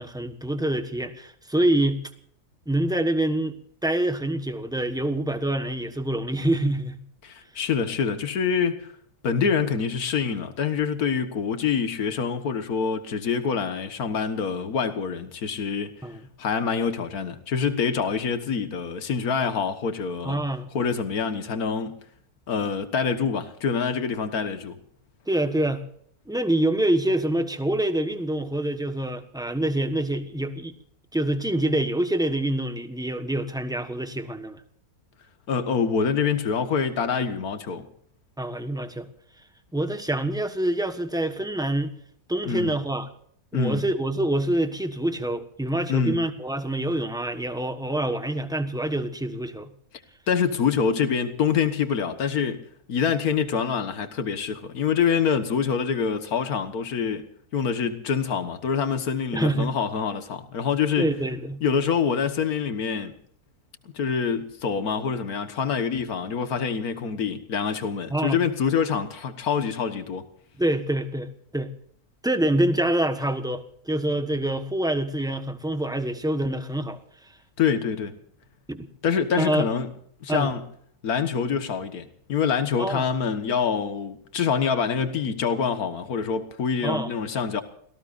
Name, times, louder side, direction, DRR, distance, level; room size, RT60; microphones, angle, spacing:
voice 1, 0.0-2.0 2.7-3.5 3.8-7.0 16.0-16.3 20.2-20.7 25.3-25.8 26.3-30.7 31.1-34.6 38.4-39.1 39.7-41.9 42.3-43.1 43.5-49.7 59.3-59.8 61.0-61.6 68.1-68.4 70.6-71.7 72.2-77.0 78.7-78.9 79.4-79.7 80.3-80.5 82.8-83.1 86.8-87.1, right 1 dB, 5° right, 1.2 m, -26 dB
voice 2, 7.2-8.9 9.2-15.9 16.4-20.4 20.7-21.9 22.5-24.8 35.5-37.9 42.5-42.8 43.5-43.8 45.9-46.2 50.3-52.6 52.9-57.3 57.5-61.1 61.6-63.1 63.9-70.2 77.6-78.2 79.0-79.9 80.2-80.6 81.0-87.6, left 6 dB, 85° left, 1.9 m, -26 dB
29.5 x 18.5 x 2.6 m
omnidirectional pair, 1.5 m